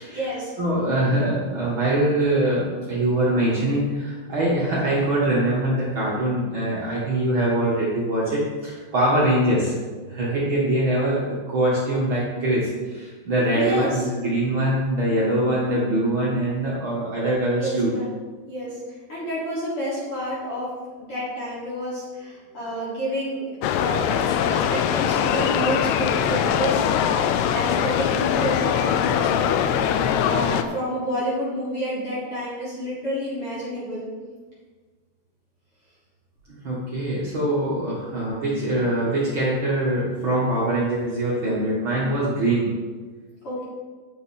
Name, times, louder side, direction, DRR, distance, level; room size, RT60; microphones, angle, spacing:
voice 1, 0.1-0.5 13.5-14.1 17.6-18.0 18.5-18.8 19.1-23.5 23.8-26.9 27.2-34.1 43.4-43.6, equal, 30° left, -9 dB, 3.8 m, -29 dB
voice 2, 0.6-9.8 10.1-17.9 36.5-42.7, right 1 dB, 70° right, -8 dB, 1.1 m, -23 dB
sound 1, 23.6-30.6, left 8 dB, 85° left, 2.3 m, -22 dB
9.4 x 7.7 x 4.4 m, 1.4 s
omnidirectional pair, 5.2 m